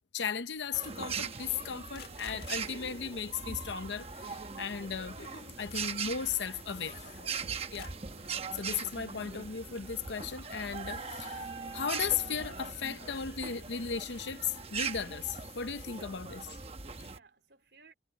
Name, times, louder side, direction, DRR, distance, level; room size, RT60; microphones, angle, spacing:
voice 1, 0.1-5.2 5.6-7.1 7.7-7.9 8.5-16.4, left 7 dB, 85° left, 0.8 m, -36 dB
sound 1, 0.7-17.2, right 5 dB, 35° right, 1.0 m, -41 dB
sound 2, 0.9-17.1, left 4 dB, 60° left, 1.9 m, -54 dB
voice 2, 16.2-17.9, right 4 dB, 75° right, 3.8 m, -62 dB
head